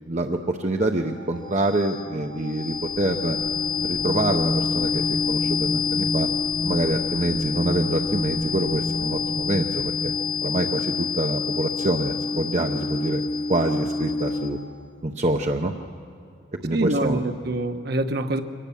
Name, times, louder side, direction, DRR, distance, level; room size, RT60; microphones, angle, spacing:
voice 1, 0.1-3.4 3.8-6.3 6.6-10.1 10.4-13.2 13.5-14.6 15.0-15.7 16.6-17.2, right 1 dB, 35° right, 4 dB, 0.7 m, -26 dB
sound 1, 0.9-14.8, left 5 dB, 25° left, 0.5 m, -28 dB
sound 2, 2.6-10.3, right 1 dB, 85° left, 6.6 m, -32 dB
voice 2, 16.7-18.4, right 1 dB, 50° right, 7 dB, 1.0 m, -25 dB
24.0 x 18.5 x 7.1 m, 2.4 s
head